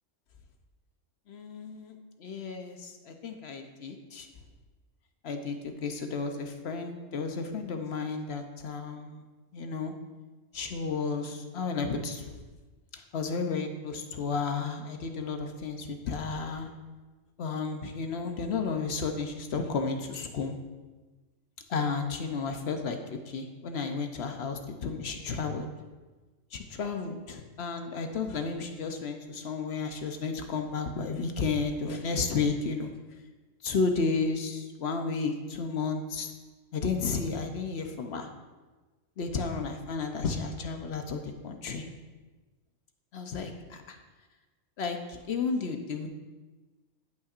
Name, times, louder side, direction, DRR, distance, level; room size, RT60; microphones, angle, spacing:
voice 1, 1.3-1.9 2.2-4.3 5.2-9.2 9.5-9.9 10.5-12.4 12.9-16.7 17.4-20.6 21.7-23.0 23.3-25.7 26.5-32.9 33.6-36.3 36.7-38.3 39.2-41.9 43.1-44.0 44.8-46.1, left 4 dB, 60° left, 5 dB, 0.9 m, -32 dB
15.5 x 5.6 x 2.5 m, 1.3 s
omnidirectional pair, 1.4 m